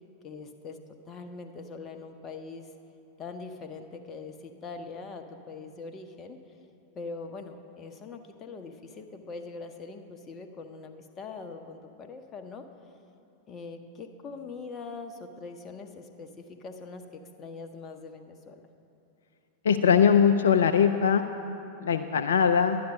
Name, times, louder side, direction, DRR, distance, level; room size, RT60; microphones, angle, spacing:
voice 1, 0.2-0.8 1.1-2.7 3.2-6.4 6.9-12.7 13.5-18.6, left 4 dB, 25° left, 6 dB, 0.9 m, -42 dB
voice 2, 19.6-21.3 21.8-22.8, left 7 dB, 65° left, 7 dB, 0.4 m, -21 dB
11.5 x 10.5 x 5.2 m, 2.7 s
figure-of-eight pair, 90°, 0 cm